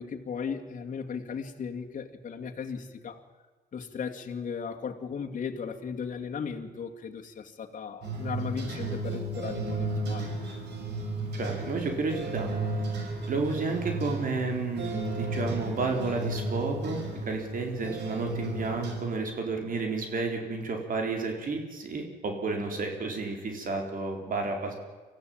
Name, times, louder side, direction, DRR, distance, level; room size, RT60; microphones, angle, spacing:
voice 1, 0.0-3.2 3.7-10.3, left 6 dB, 50° left, 2 dB, 2.4 m, -36 dB
sound 1, 8.0-19.0, right 2 dB, 80° right, 5.7 m, -34 dB
voice 2, 11.4-12.5 13.3-24.7, right 3 dB, 55° right, 3 dB, 4.3 m, -31 dB
25.0 x 15.0 x 8.9 m, 1.3 s
cardioid pair, 105°, 17 cm